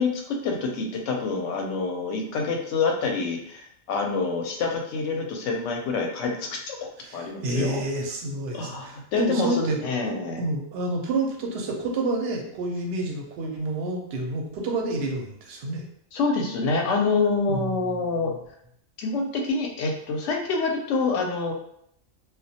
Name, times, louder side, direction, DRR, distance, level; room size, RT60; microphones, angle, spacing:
voice 1, 0.0-6.8 7.1-7.8 8.5-10.4 16.1-18.3 19.0-21.5, left 4 dB, 70° left, 1 dB, 0.8 m, -26 dB
voice 2, 7.0-9.8 10.1-15.9 17.5-18.4, right 2 dB, 60° right, 1 dB, 0.7 m, -29 dB
2.2 x 2.1 x 2.7 m, 0.71 s
omnidirectional pair, 1.4 m